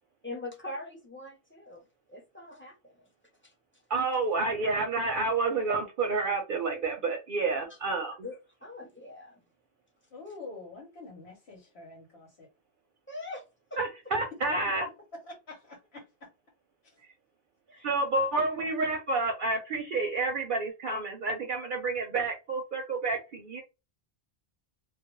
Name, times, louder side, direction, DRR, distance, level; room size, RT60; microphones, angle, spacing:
voice 1, 0.2-3.1 3.4-3.5 7.7-7.8 8.2-9.4 13.1-13.4 13.7-13.8 17.7-17.9, left 2 dB, 15° left, 0.5 m, -43 dB
voice 2, 3.9-8.1 13.8-14.9 17.8-23.6, right 3 dB, 60° right, 0.6 m, -29 dB
voice 3, 10.1-12.5 15.2-16.3 16.8-17.0, left 3 dB, 85° left, 1.2 m, -46 dB
2.3 x 2.2 x 3.0 m
omnidirectional pair, 1.0 m